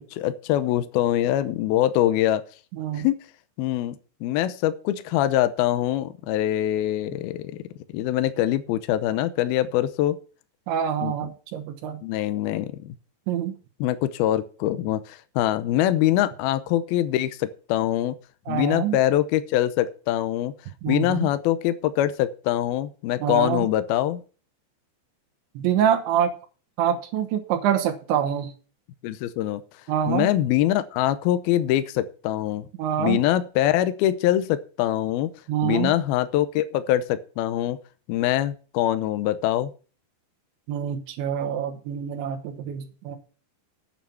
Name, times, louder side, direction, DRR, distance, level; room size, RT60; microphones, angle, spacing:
voice 1, 0.1-2.4 2.9-3.2 3.6-4.0 4.2-7.5 7.9-10.2 11.0-11.3 12.0-12.9 13.8-18.2 18.5-20.5 20.9-24.2 29.0-29.6 30.1-32.7 33.0-35.3 35.6-37.8 38.1-39.7, left 13 dB, 85° left, 12 dB, 2.2 m, -23 dB
voice 2, 10.7-12.0 13.3-13.5 18.5-19.0 20.8-21.3 23.2-23.7 25.6-26.3 26.8-28.5 29.9-30.3 32.8-33.2 35.5-35.9 40.7-43.2, right 9 dB, 80° right, 6 dB, 3.5 m, -25 dB
8.9 x 7.5 x 6.9 m, 0.37 s
omnidirectional pair, 5.3 m